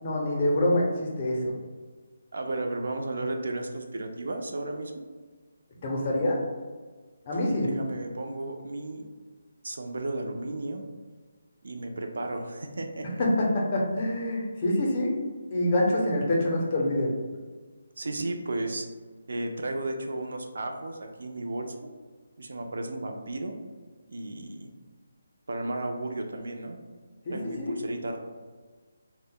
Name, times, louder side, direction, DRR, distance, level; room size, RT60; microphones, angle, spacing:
voice 1, 0.0-1.5 5.8-6.4 7.2-7.7 13.2-13.5 13.7-15.1 15.5-17.2 27.3-27.8, left 1 dB, 25° left, -2 dB, 0.5 m, -26 dB
voice 2, 2.3-5.0 7.6-9.1 9.6-10.8 11.6-13.2 18.0-18.9 19.3-21.9 22.4-23.6 24.1-24.7 25.5-26.8 27.3-28.2, right 2 dB, 70° right, 4 dB, 0.3 m, -34 dB
2.1 x 2.0 x 3.7 m, 1.4 s
hypercardioid pair, 175°, 0 cm